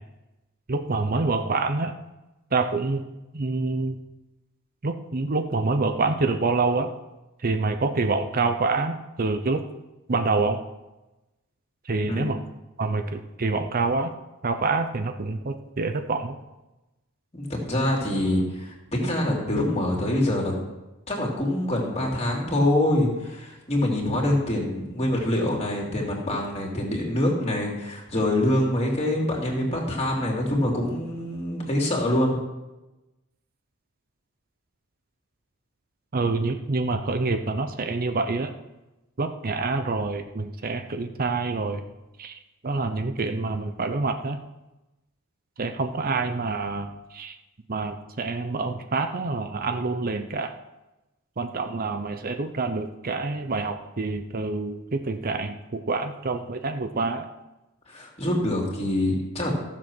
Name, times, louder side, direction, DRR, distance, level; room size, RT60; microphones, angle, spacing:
voice 1, 0.7-1.9 2.5-3.0 3.3-4.0 4.8-6.9 7.4-9.6 10.1-10.6 11.9-12.4 12.8-14.1 14.4-16.4 36.1-38.5 39.2-41.9 42.2-44.4 45.6-47.3 47.7-50.5 51.4-57.3, right 3 dB, 40° right, 7 dB, 0.7 m, -27 dB
voice 2, 17.3-20.5 21.1-32.4 57.9-59.5, left 1 dB, 30° left, -1 dB, 2.9 m, -25 dB
14.5 x 7.4 x 6.2 m, 1.0 s
head